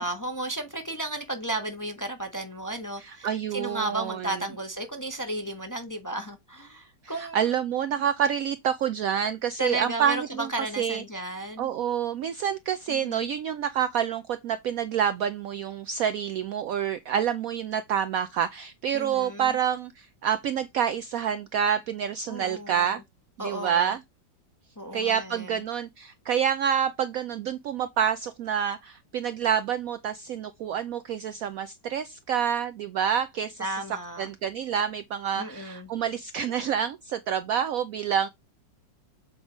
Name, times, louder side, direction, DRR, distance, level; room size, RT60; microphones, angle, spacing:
voice 1, 0.0-7.5 9.6-11.7 12.9-13.3 18.9-19.6 22.3-23.0 23.4-23.9 24.8-25.6 33.6-34.3 35.4-35.9, right 1 dB, 15° left, 0.8 m, -34 dB
voice 2, 3.0-4.3 7.2-10.5 10.8-11.0 11.6-23.0 23.4-24.0 24.9-33.6 34.2-38.3, right 8 dB, 85° right, 0.7 m, -28 dB
7.8 x 3.5 x 5.0 m
omnidirectional pair, 2.1 m